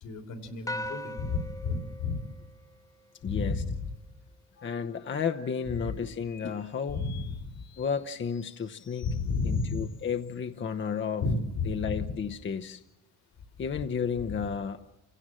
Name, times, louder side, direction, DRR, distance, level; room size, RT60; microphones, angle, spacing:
voice 1, 0.0-2.2 3.2-3.9 5.7-5.9 6.9-7.6 9.0-9.9 11.2-12.1 14.3-14.4, left 4 dB, 85° left, 6 dB, 3.4 m, -32 dB
sound 1, 0.7-3.2, left 1 dB, 10° left, 1.3 m, -40 dB
voice 2, 3.2-3.6 4.6-7.0 7.8-9.1 9.4-11.2 11.7-12.8 13.6-14.8, left 6 dB, 40° left, 6 dB, 0.9 m, -32 dB
sound 2, 4.6-10.4, left 7 dB, 60° left, 1.8 m, -57 dB
27.5 x 16.5 x 7.6 m, 1.0 s
cardioid pair, 90°, 30 cm